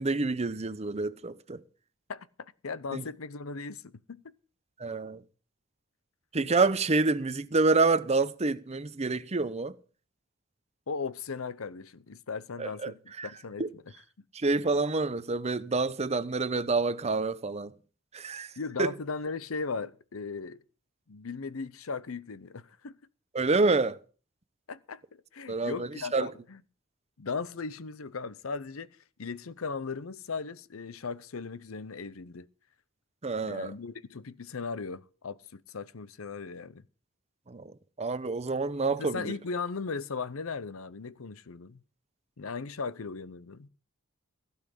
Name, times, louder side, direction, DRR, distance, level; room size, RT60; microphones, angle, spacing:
voice 1, 0.0-1.6 2.9-3.0 4.8-5.2 6.3-9.7 12.6-13.3 13.6-13.7 14.3-17.7 18.1-18.5 18.8-18.9 23.3-24.0 25.5-26.3 33.2-33.7 37.5-39.3, right 3 dB, 30° right, 0.7 m, -28 dB
voice 2, 2.1-4.3 10.9-13.8 18.6-20.6 21.1-23.0 24.7-25.0 25.3-26.6 27.2-28.9 29.2-32.5 33.4-36.8 39.0-41.8 42.4-43.7, left 4 dB, 85° left, 0.8 m, -37 dB
16.0 x 5.6 x 8.4 m
head